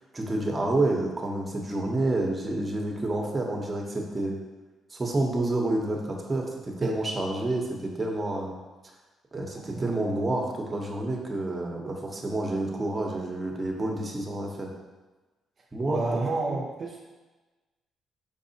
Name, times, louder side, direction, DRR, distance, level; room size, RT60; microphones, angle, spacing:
voice 1, 0.1-4.4 4.9-8.6 9.3-14.7 15.7-16.6, right 2 dB, 25° right, 0 dB, 0.8 m, -29 dB
voice 2, 9.5-10.0 15.9-17.0, right 3 dB, 50° right, -2 dB, 0.5 m, -30 dB
4.6 x 3.7 x 2.8 m, 1.2 s
cardioid pair, 90°, 0 cm